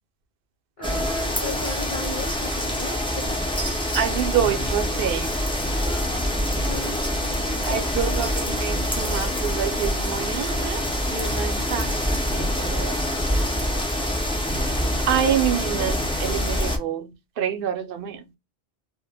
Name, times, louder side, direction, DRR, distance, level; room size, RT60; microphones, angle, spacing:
voice 1, 0.8-3.5 5.8-6.1 6.7-8.1 11.3-11.4 14.8-15.1, left 2 dB, 35° left, 0.7 m, -36 dB
sound 1, 0.8-16.8, equal, 10° left, 0.3 m, -25 dB
voice 2, 3.9-5.3 7.6-10.8 11.1-12.0 12.3-13.1 14.5-18.3, right 9 dB, 65° right, 0.7 m, -27 dB
2.2 x 2.1 x 3.2 m
omnidirectional pair, 1.0 m